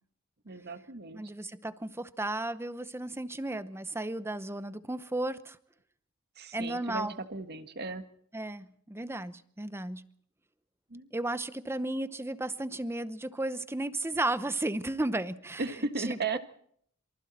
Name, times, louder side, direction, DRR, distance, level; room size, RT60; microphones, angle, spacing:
voice 1, 0.4-1.2 6.4-8.0 10.9-11.1 15.6-16.4, right 3 dB, 45° right, 1.7 m, -36 dB
voice 2, 1.1-5.6 6.5-7.1 8.3-10.1 11.1-15.6 16.0-16.4, right 2 dB, 10° right, 0.8 m, -34 dB
27.5 x 24.0 x 4.4 m
head